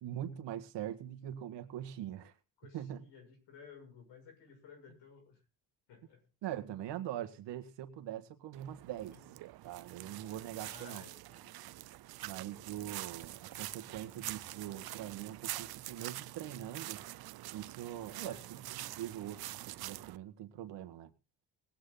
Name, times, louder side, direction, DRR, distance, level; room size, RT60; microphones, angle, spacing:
voice 1, 0.0-2.3 2.7-3.0 6.4-9.2 9.6-11.0 12.2-17.0 17.5-21.1, right 11 dB, 85° right, 1.6 m, -43 dB
voice 2, 2.6-5.4 5.9-6.2 9.9-11.7 18.2-18.4, left 5 dB, 80° left, 6.4 m, -56 dB
sound 1, 8.5-20.2, right 16 dB, 60° right, 0.6 m, -45 dB
20.5 x 8.5 x 3.9 m
cardioid pair, 125°, 41 cm